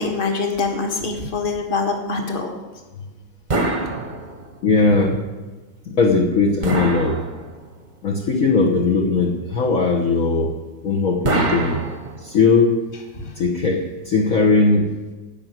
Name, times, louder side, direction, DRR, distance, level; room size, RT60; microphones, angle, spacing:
voice 1, 0.0-2.5 13.1-13.4, left 4 dB, 30° left, 2 dB, 1.7 m, -24 dB
sound 1, 3.5-4.7 6.6-7.9 11.2-12.5, right 2 dB, 30° right, 1.1 m, -24 dB
voice 2, 4.6-5.2 5.8-7.2 8.0-10.5 10.8-11.8 12.2-12.7 13.3-14.9, left 4 dB, 50° left, -2 dB, 1.4 m, -18 dB
14.0 x 5.8 x 9.2 m, 1.3 s
omnidirectional pair, 2.1 m